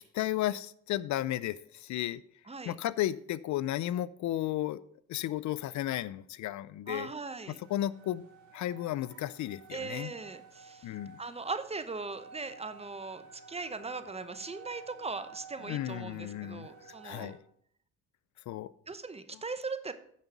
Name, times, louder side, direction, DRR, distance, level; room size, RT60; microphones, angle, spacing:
voice 1, 0.0-2.2 2.7-4.8 5.1-7.1 7.7-8.3 8.5-10.1 10.8-11.2 15.6-17.4 18.5-18.7, left 13 dB, 70° left, 19 dB, 0.5 m, -34 dB
voice 2, 6.9-7.6 9.7-17.3 18.9-19.9, right 4 dB, 20° right, 12 dB, 0.8 m, -39 dB
sound 1, 7.4-17.4, right 5 dB, 70° right, 3.3 m, -53 dB
9.6 x 5.2 x 6.0 m, 0.65 s
cardioid pair, 90°, 30 cm